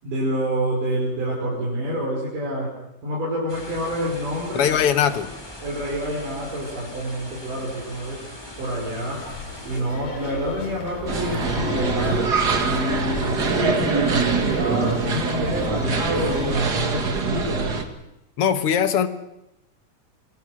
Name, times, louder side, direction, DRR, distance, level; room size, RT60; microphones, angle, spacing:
voice 1, 0.0-2.7 3.0-5.0 5.6-8.2 8.6-9.2 9.7-12.3 12.6-17.8, equal, 80° right, -5 dB, 7.1 m, -27 dB
sound 1, 3.5-9.8, left 1 dB, 10° left, 2.6 m, -40 dB
voice 2, 4.5-5.3 18.4-19.1, left 8 dB, 55° left, 11 dB, 1.8 m, -20 dB
sound 2, 9.1-16.6, left 3 dB, 90° left, 5.1 m, -35 dB
sound 3, 11.1-17.8, right 4 dB, 35° right, 2.0 m, -24 dB
27.0 x 22.5 x 6.4 m, 0.87 s
omnidirectional pair, 3.7 m